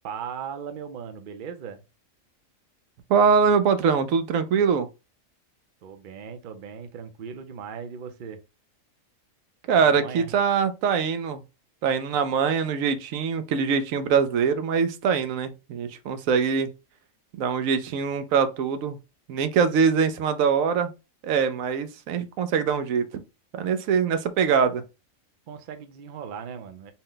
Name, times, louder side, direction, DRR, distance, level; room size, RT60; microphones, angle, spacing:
voice 1, 0.0-1.8 5.8-8.4 9.8-10.3 25.5-26.9, right 7 dB, 50° right, 0.6 m, -38 dB
voice 2, 3.1-4.9 9.7-11.4 11.8-16.7 17.4-19.0 19.3-20.9 21.2-23.0 23.5-24.8, right 6 dB, 85° right, 1.0 m, -23 dB
4.2 x 2.1 x 3.8 m
omnidirectional pair, 1.4 m